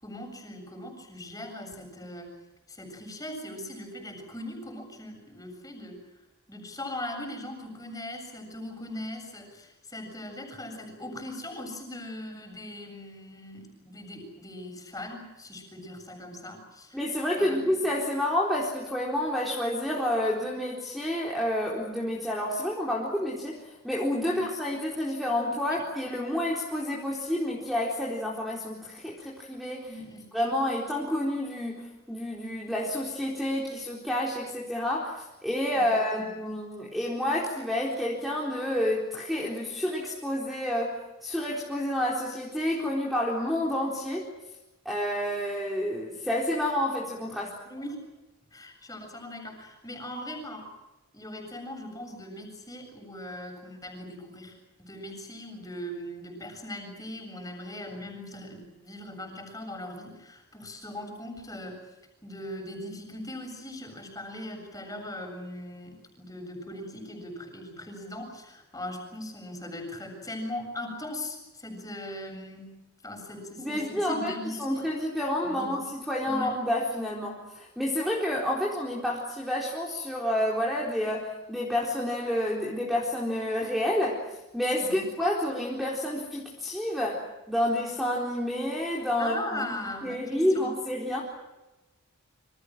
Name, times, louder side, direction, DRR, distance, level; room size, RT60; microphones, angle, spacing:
voice 1, 0.0-2.3 2.7-6.0 6.5-17.0 17.4-17.7 24.2-24.5 25.6-25.8 29.9-30.2 35.8-36.3 47.7-48.0 48.5-50.7 51.1-61.8 62.2-72.8 73.0-74.9 75.4-75.8 76.2-76.5 84.8-85.1 89.2-90.7, left 1 dB, 15° left, 4 dB, 7.6 m, -40 dB
voice 2, 16.9-29.9 30.3-44.3 44.8-47.6 73.6-74.3 74.6-84.2 84.5-89.7 90.0-91.2, left 1 dB, ahead, -3 dB, 4.2 m, -29 dB
28.5 x 26.5 x 6.3 m, 1.0 s
head